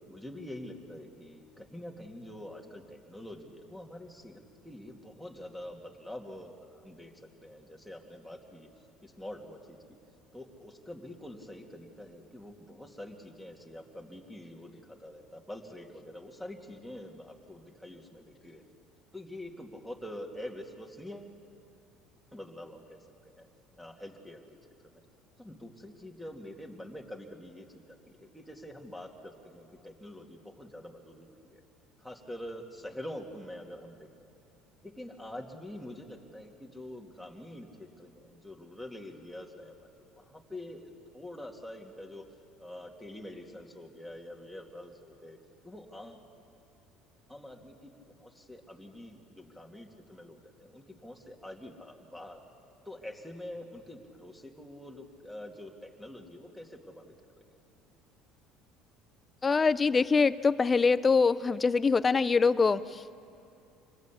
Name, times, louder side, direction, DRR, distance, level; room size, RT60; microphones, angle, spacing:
voice 1, 0.1-8.7 9.0-9.8 10.3-18.6 19.1-21.3 22.3-23.5 23.8-24.4 24.8-25.0 25.4-31.6 32.0-34.1 34.8-42.3 42.6-45.4 45.6-46.3 47.3-52.4 52.8-57.4, left 1 dB, ahead, -1 dB, 2.7 m, -46 dB
voice 2, 59.4-63.0, left 4 dB, 25° left, 16 dB, 0.6 m, -24 dB
26.0 x 19.5 x 8.5 m, 2.7 s
supercardioid pair, 110°, 0 cm